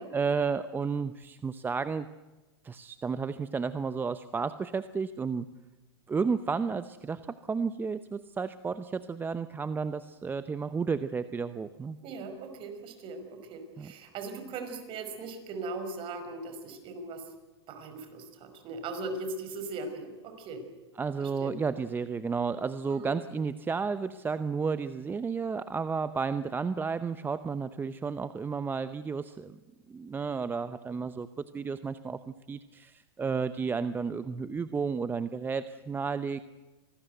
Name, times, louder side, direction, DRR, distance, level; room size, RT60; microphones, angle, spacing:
voice 1, 0.1-2.1 2.6-5.5 6.1-12.0 13.8-13.9 21.0-29.5 29.9-31.3 31.5-32.2 32.5-36.4, right 5 dB, 15° right, 12 dB, 0.7 m, -32 dB
voice 2, 12.0-17.2 17.7-20.7 21.2-21.5 22.9-23.1, right 3 dB, 40° right, 7 dB, 5.3 m, -39 dB
26.0 x 19.0 x 8.0 m, 1.2 s
hypercardioid pair, 120°, 14 cm